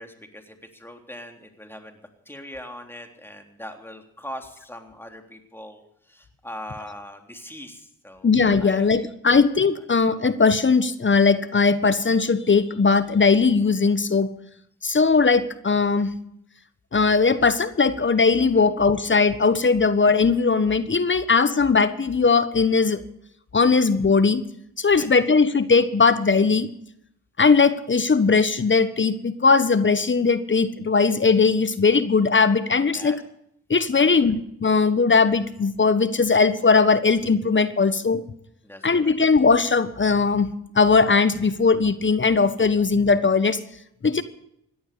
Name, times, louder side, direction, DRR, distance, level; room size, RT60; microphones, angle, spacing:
voice 1, 0.0-2.0 2.3-5.8 6.1-8.3 8.6-9.4 9.7-9.9 18.6-18.7 24.9-25.1 32.9-33.2 33.9-34.4 38.6-39.2, left 1 dB, 5° left, 4 dB, 3.5 m, -41 dB
voice 2, 8.2-14.3 14.8-16.1 16.9-23.0 23.5-24.4 24.8-26.7 27.4-33.2 33.7-38.2 38.8-40.5 40.7-43.6 44.0-44.2, left 4 dB, 30° left, 13 dB, 1.3 m, -19 dB
17.0 x 11.0 x 6.9 m, 0.75 s
hypercardioid pair, 45°, 37 cm